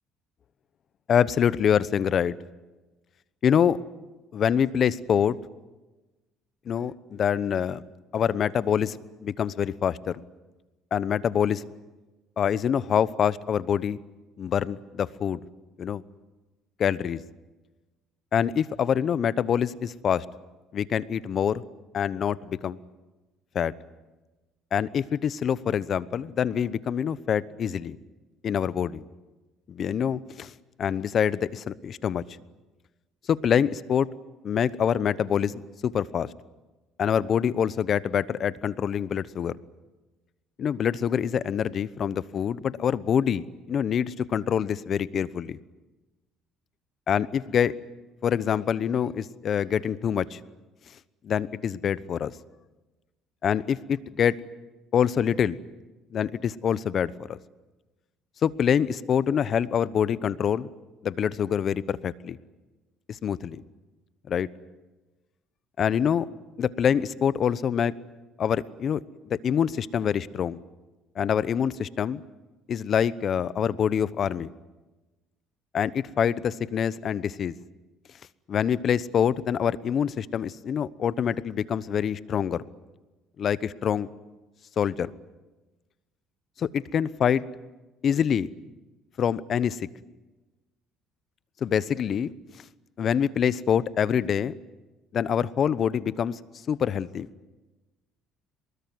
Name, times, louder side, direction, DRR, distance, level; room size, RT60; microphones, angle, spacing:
voice 1, 1.1-2.4 3.4-3.8 4.3-5.4 6.7-7.8 8.1-9.0 9.2-10.2 10.9-11.6 12.4-14.0 14.4-15.4 15.8-16.0 16.8-17.2 18.3-20.3 20.7-21.6 21.9-22.8 23.5-23.7 24.7-28.0 28.4-29.0 29.7-30.5 30.8-32.2 33.3-34.1 34.4-36.3 37.0-39.5 40.6-45.6 47.1-47.7 48.2-50.4 51.2-52.3 53.4-54.4 54.9-55.6 56.1-57.4 58.4-60.7 61.0-62.4 63.1-63.6 64.3-64.5 65.8-66.3 66.6-67.9 68.4-70.6 71.2-72.2 72.7-74.5 75.7-77.5 78.5-82.6 83.4-84.1 84.8-85.1 86.6-87.4 88.0-88.5 89.2-89.9 91.6-92.3 93.0-94.5 95.1-96.4 96.7-97.3, left 8 dB, 50° left, 18 dB, 0.9 m, -25 dB
23.5 x 21.0 x 9.5 m, 1.1 s
cardioid pair, 95°, 0 cm